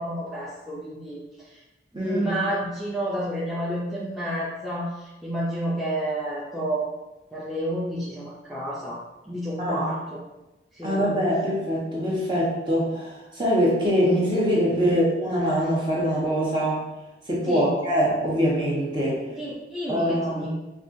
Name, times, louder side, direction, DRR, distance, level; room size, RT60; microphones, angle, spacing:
voice 1, 0.0-1.6 1.9-6.9 7.3-10.2 10.7-11.0 17.5-17.7 19.4-20.5, right 1 dB, ahead, -8 dB, 0.5 m, -30 dB
voice 2, 1.9-2.3 9.6-9.9 10.8-16.8 17.3-19.2 19.9-20.5, equal, 25° right, -6 dB, 1.0 m, -23 dB
5.2 x 2.4 x 2.6 m, 1.0 s
head